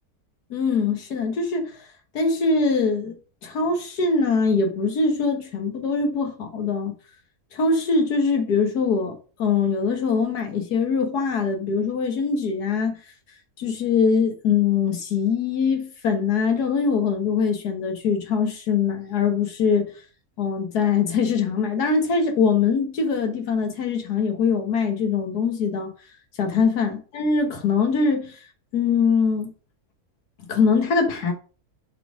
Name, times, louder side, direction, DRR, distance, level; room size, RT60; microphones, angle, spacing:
voice 1, 0.5-1.8 2.1-3.2 3.4-6.9 7.5-13.0 13.6-19.9 20.4-25.9 26.4-28.4 28.7-29.5 30.5-31.3, left 5 dB, 80° left, 1.9 m, -22 dB
6.6 x 4.2 x 5.0 m
omnidirectional pair, 1.6 m